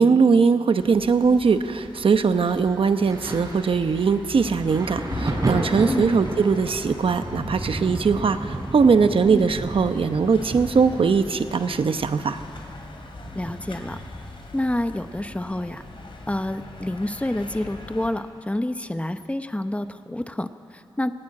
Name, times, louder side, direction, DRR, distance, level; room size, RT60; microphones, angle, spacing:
voice 1, 0.0-12.4, right 5 dB, 85° right, 9 dB, 0.9 m, -20 dB
sound 1, 0.8-18.1, left 3 dB, 75° left, 2.7 m, -41 dB
Thunder, 3.0-16.4 16.6-18.0 18.8-19.0, right 2 dB, 45° right, 4.5 m, -34 dB
voice 2, 13.3-14.0 14.5-15.8 16.3-21.1, left 1 dB, 15° left, 9 dB, 0.8 m, -28 dB
18.5 x 18.0 x 8.7 m, 2.2 s
wide cardioid pair, 90°, 9 cm